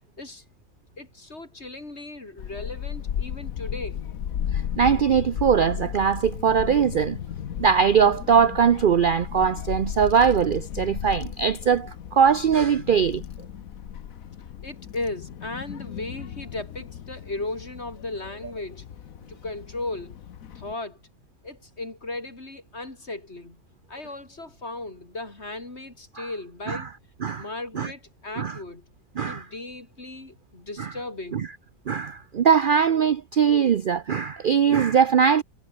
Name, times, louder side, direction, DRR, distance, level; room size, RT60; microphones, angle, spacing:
voice 1, 1.0-4.1 14.6-18.8 19.3-20.2 20.5-21.0 21.4-23.6 23.9-26.9 27.4-28.8 29.2-31.5, left 2 dB, 40° left, 4.4 m, -36 dB
Child speech kid speaking / Wind, 2.4-20.7, left 9 dB, 60° left, 1.4 m, -35 dB
voice 2, 4.5-7.2 7.6-13.2 26.2-26.3 26.7-26.8 27.2-27.5 27.7-27.9 28.4-28.6 29.2-29.5 30.8-30.9 31.3-31.5 31.9-35.4, right 7 dB, 70° right, 0.4 m, -21 dB
omnidirectional pair, 1.7 m